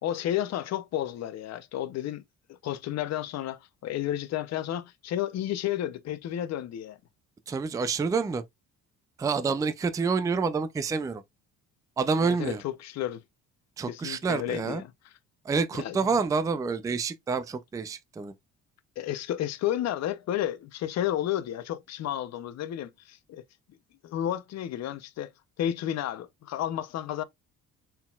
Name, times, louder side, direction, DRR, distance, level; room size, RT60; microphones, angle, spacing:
voice 1, 0.0-2.2 2.5-7.0 12.2-13.2 13.9-14.9 15.8-16.0 19.0-23.4 24.0-25.3 25.6-27.2, left 11 dB, 55° left, 0.6 m, -32 dB
voice 2, 7.5-8.4 9.2-11.2 12.0-12.6 13.8-14.8 15.5-18.3, right 5 dB, 10° right, 0.3 m, -28 dB
4.2 x 3.8 x 2.3 m
cardioid pair, 120°, 31 cm